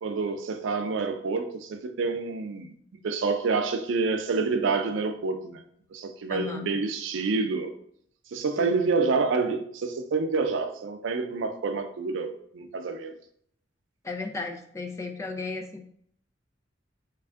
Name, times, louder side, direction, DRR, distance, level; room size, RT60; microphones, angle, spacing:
voice 1, 0.0-2.7 3.0-5.6 5.9-7.7 8.3-13.1, right 4 dB, 85° right, 0.4 m, -28 dB
voice 2, 6.3-6.7 8.6-8.9 14.0-15.8, left 3 dB, 15° left, 0.4 m, -35 dB
3.4 x 2.3 x 3.3 m
head